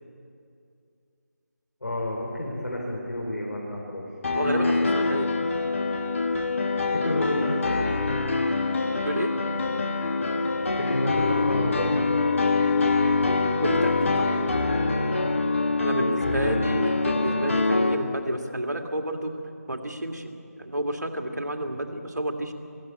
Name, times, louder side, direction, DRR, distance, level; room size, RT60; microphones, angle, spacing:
voice 1, 1.8-4.0 6.9-7.8 10.6-12.4 16.2-16.5, left 1 dB, 70° left, -3 dB, 5.1 m, -30 dB
Piano, 4.2-17.9, left 3 dB, 50° left, 1.6 m, -24 dB
voice 2, 4.3-5.3 9.0-9.4 13.6-14.4 15.8-19.4 19.7-22.5, right 1 dB, 80° right, 4 dB, 2.2 m, -30 dB
21.5 x 16.0 x 8.8 m, 2.5 s
figure-of-eight pair, 165°, 9 cm